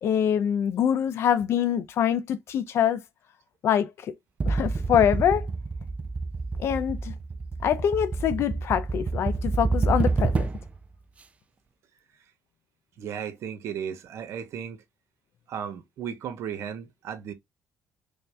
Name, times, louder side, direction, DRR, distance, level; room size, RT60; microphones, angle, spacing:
voice 1, 0.0-3.0 3.6-3.9 4.5-5.5 6.6-7.1 7.6-10.5, left 9 dB, 65° left, 0.4 m, -24 dB
sound 1, 4.4-10.8, right 3 dB, 25° right, 0.4 m, -28 dB
voice 2, 13.0-14.8 15.5-17.3, right 8 dB, 70° right, 0.9 m, -35 dB
3.4 x 2.6 x 3.3 m
cardioid pair, 110°, 5 cm